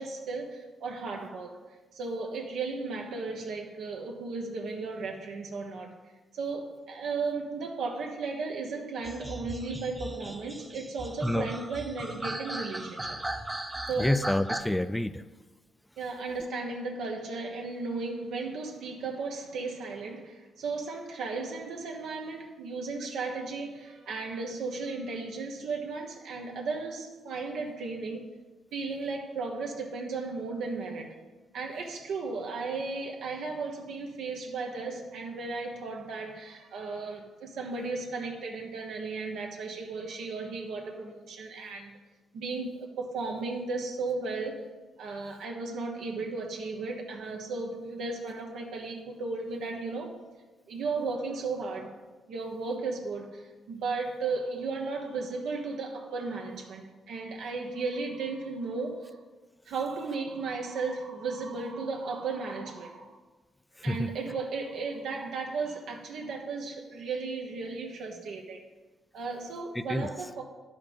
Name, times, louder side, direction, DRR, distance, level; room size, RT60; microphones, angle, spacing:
voice 1, 0.0-1.6 1.9-5.9 6.3-13.2 13.9-14.1 16.0-28.3 28.7-31.1 31.5-41.9 42.3-44.7 45.0-50.2 50.7-51.9 52.3-59.1 59.7-63.2 63.8-68.6 69.1-70.4, right 4 dB, 75° right, 0 dB, 1.2 m, -35 dB
sound 1, 9.0-14.6, right 1 dB, 15° right, 0.8 m, -37 dB
voice 2, 14.0-15.2 63.8-64.1 69.8-70.1, left 1 dB, 10° left, 12 dB, 0.4 m, -28 dB
11.0 x 5.7 x 5.3 m, 1.2 s
cardioid pair, 90°, 0 cm